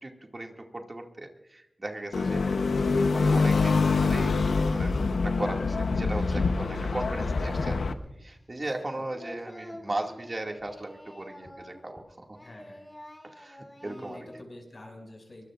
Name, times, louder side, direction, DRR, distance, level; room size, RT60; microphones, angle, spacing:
voice 1, 0.0-2.6 2.9-7.8 8.2-12.4 13.2-14.2, right 2 dB, 40° right, 2 dB, 2.2 m, -37 dB
sound 1, 2.1-7.9, left 4 dB, 85° left, 0.9 m, -25 dB
Singing, 7.6-8.1 8.4-12.1 12.3-14.4, left 1 dB, 15° left, 4.3 m, -48 dB
voice 2, 8.6-9.4 9.7-10.1 12.4-12.8 13.8-15.4, left 1 dB, 50° left, 2 dB, 6.1 m, -47 dB
24.5 x 19.5 x 2.5 m, 0.88 s
cardioid pair, 45°, 0 cm